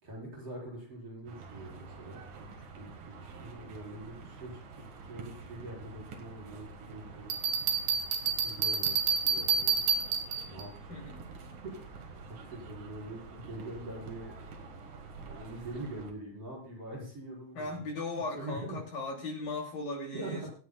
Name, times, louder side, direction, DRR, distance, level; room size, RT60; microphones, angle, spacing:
voice 1, 0.0-4.8 5.1-7.3 8.4-9.8 10.5-11.0 11.6-14.3 15.2-17.8 18.4-18.8 20.1-20.5, right 1 dB, 35° right, -5 dB, 5.8 m, -44 dB
sound 1, 1.3-16.1, right 4 dB, 60° right, 3.1 m, -47 dB
Bell, 7.3-10.6, right 6 dB, 85° right, 3.5 m, -29 dB
voice 2, 10.9-11.3 17.5-20.5, left 2 dB, 60° left, 0 dB, 4.3 m, -37 dB
25.5 x 8.6 x 2.3 m, 0.43 s
omnidirectional pair, 4.8 m